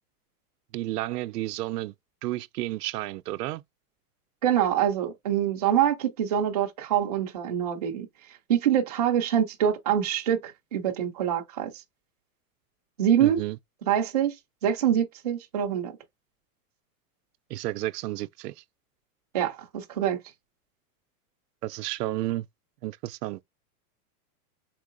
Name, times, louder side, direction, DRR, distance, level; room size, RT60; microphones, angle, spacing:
voice 1, 0.7-1.9 2.2-3.6 13.2-13.6 17.5-18.5 21.6-22.5 22.8-23.4, right 16 dB, 85° right, 0.6 m, -31 dB
voice 2, 4.4-8.1 8.5-11.7 13.0-13.4 13.9-14.3 14.6-15.9 19.3-20.2, right 9 dB, 30° right, 0.4 m, -25 dB
4.5 x 3.7 x 2.5 m
supercardioid pair, 180°, 46 cm